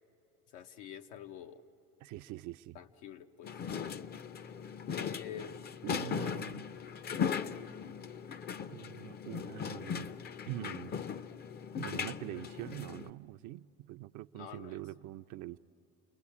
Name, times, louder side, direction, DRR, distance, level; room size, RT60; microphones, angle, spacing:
voice 1, 0.5-1.6 2.7-3.6 4.9-5.6 14.3-14.8, left 9 dB, 85° left, 1.0 m, -47 dB
voice 2, 2.0-2.8 5.8-6.7 8.7-10.1 10.5-10.9 11.7-15.6, right 16 dB, 55° right, 0.5 m, -44 dB
sound 1, 3.4-13.1, left 7 dB, 30° left, 0.5 m, -39 dB
29.0 x 21.5 x 8.5 m
supercardioid pair, 95°, 34 cm